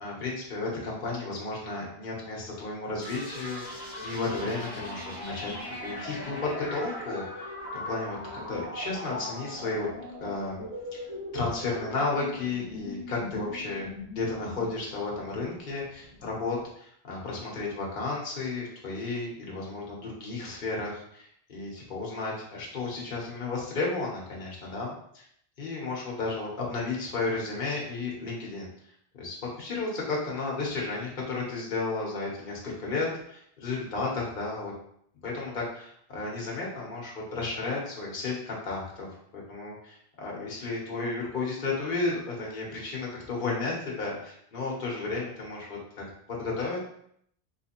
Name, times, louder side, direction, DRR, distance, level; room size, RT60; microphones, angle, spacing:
voice 1, 0.0-5.5 5.8-8.2 8.5-9.9 10.2-10.6 10.9-11.0 11.3-13.9 14.1-24.9 25.6-28.7 29.1-34.7 35.2-39.1 39.3-46.8, left 3 dB, 55° left, -3 dB, 1.1 m, -33 dB
sound 1, 3.0-16.6, left 1 dB, 20° left, 1.3 m, -40 dB
3.2 x 3.2 x 2.9 m, 0.68 s
omnidirectional pair, 1.0 m